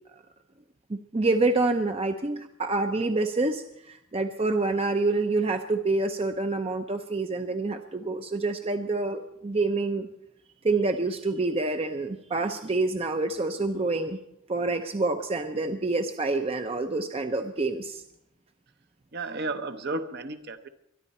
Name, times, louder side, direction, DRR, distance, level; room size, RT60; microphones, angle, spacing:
voice 1, 0.9-10.1 10.6-14.2 14.5-18.0, right 3 dB, 30° right, 7 dB, 0.6 m, -27 dB
voice 2, 19.1-20.7, right 3 dB, 55° right, 8 dB, 1.0 m, -33 dB
23.0 x 11.0 x 4.3 m, 0.82 s
head